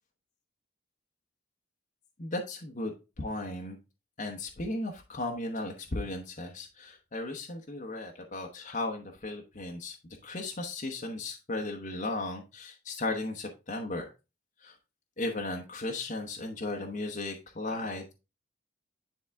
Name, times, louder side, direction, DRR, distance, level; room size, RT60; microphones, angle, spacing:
voice 1, 2.2-3.8 4.2-10.0 10.2-14.0 14.6-14.8 15.2-18.1, left 2 dB, 40° left, 2 dB, 0.9 m, -36 dB
10.0 x 3.4 x 3.5 m, 0.28 s
head